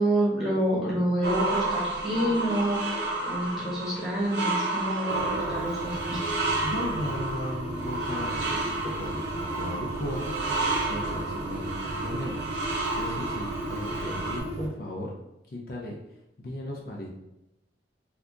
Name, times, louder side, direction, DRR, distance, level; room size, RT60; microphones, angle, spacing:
voice 1, 0.0-6.2, right 1 dB, ahead, -8 dB, 1.1 m, -28 dB
sound 1, 1.2-14.4, right 2 dB, 80° right, 0.8 m, -31 dB
sound 2, 5.1-14.7, right 1 dB, 35° right, 0.3 m, -36 dB
voice 2, 6.6-15.1 15.5-16.0 16.4-17.1, left 1 dB, 55° left, -2 dB, 0.5 m, -36 dB
2.7 x 2.4 x 3.6 m, 0.88 s
head